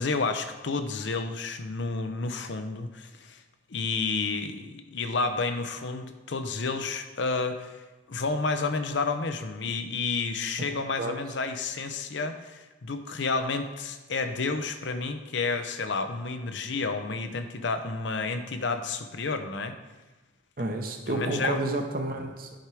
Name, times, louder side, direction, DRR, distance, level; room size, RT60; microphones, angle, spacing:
voice 1, 0.0-3.4 3.7-19.8 21.1-21.6, left 4 dB, 70° left, 8 dB, 0.7 m, -30 dB
voice 2, 20.6-22.6, right 2 dB, 45° right, 4 dB, 0.9 m, -30 dB
10.5 x 4.5 x 4.7 m, 1.1 s
head